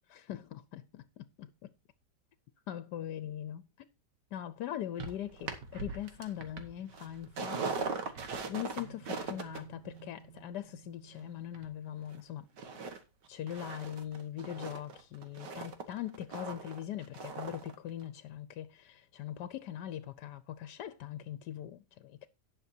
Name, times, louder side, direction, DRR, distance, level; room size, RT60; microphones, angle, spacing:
voice 1, 0.1-1.7 2.7-3.7 4.3-8.1 8.4-12.5 13.3-22.3, left 11 dB, 75° left, 1.3 m, -41 dB
sound 1, 5.0-12.2 12.6-13.0 13.2-17.7 18.0-18.1, right 4 dB, 85° right, 2.1 m, -41 dB
17.5 x 6.4 x 2.7 m
omnidirectional pair, 1.8 m